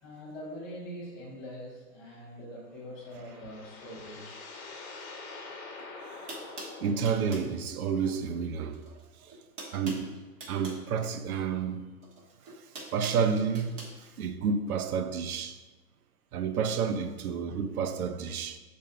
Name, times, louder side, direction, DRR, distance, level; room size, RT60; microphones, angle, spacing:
voice 1, 0.0-4.5, equal, 5° left, 0.4 m, -43 dB
sound 1, 2.7-7.9, left 3 dB, 30° left, 1.0 m, -46 dB
sound 2, 5.8-5.9 6.3-7.5 8.7-9.0 9.3-10.8 12.0-13.9, right 2 dB, 25° right, 1.2 m, -44 dB
voice 2, 6.8-8.9 9.2-9.4 9.7-11.9 12.5-12.6 12.9-15.6 16.3-18.6, right 6 dB, 65° right, 0.6 m, -30 dB
6.8 x 2.6 x 5.5 m
hypercardioid pair, 140°, 48 cm